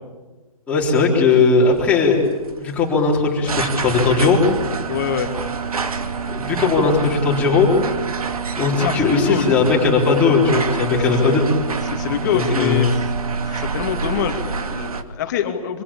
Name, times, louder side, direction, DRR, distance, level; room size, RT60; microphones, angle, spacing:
voice 1, 0.7-2.2 2.6-4.4 6.3-7.7 8.6-11.4 12.3-12.9, left 4 dB, 5° left, -3 dB, 4.1 m, -18 dB
sound 1, 1.4-15.0, right 5 dB, 80° right, 2.3 m, -27 dB
voice 2, 4.9-5.3 8.8-9.7 10.9-11.3 11.8-13.0 13.4-15.8, left 8 dB, 30° left, 5 dB, 2.6 m, -25 dB
26.5 x 25.5 x 8.7 m, 1.3 s
hypercardioid pair, 165°, 19 cm